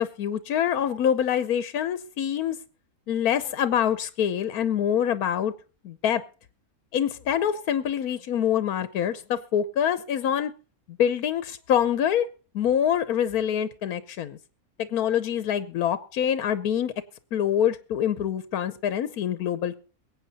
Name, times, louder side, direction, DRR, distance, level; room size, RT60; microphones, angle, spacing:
voice 1, 0.0-2.6 3.1-5.5 5.8-6.2 6.9-10.5 10.9-12.3 12.5-14.4 14.8-16.9 17.3-19.7, left 9 dB, 80° left, 13 dB, 1.3 m, -25 dB
22.0 x 8.9 x 4.1 m, 0.36 s
omnidirectional pair, 1.5 m